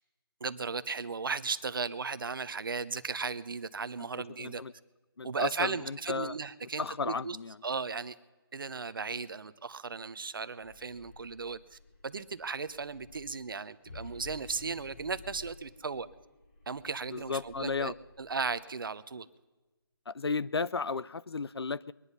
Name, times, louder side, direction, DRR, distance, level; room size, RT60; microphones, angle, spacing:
voice 1, 0.4-4.6 5.2-7.4 7.6-8.2 8.5-16.1 16.7-19.3, right 4 dB, 60° right, 14 dB, 0.8 m, -36 dB
voice 2, 4.4-4.7 5.2-6.4 6.6-7.6 17.1-17.9 20.1-21.9, left 4 dB, 90° left, 18 dB, 0.5 m, -34 dB
sound 1, 10.5-18.5, left 3 dB, 30° left, 3.1 m, -53 dB
22.5 x 10.0 x 5.5 m, 1.2 s
figure-of-eight pair, 165°, 13 cm